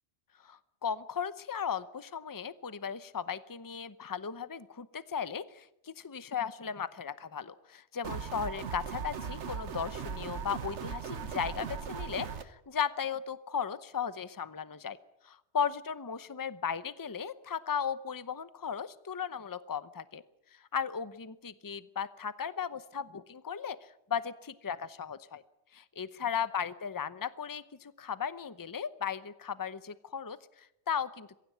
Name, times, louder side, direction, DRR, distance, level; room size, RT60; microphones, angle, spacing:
voice 1, 0.4-15.0 15.2-20.2 20.5-25.4 25.7-31.4, left 7 dB, 20° left, 14 dB, 0.7 m, -36 dB
sound 1, 8.0-12.4, right 6 dB, 75° right, 1.4 m, -38 dB
23.0 x 16.0 x 9.4 m, 0.84 s
omnidirectional pair, 1.2 m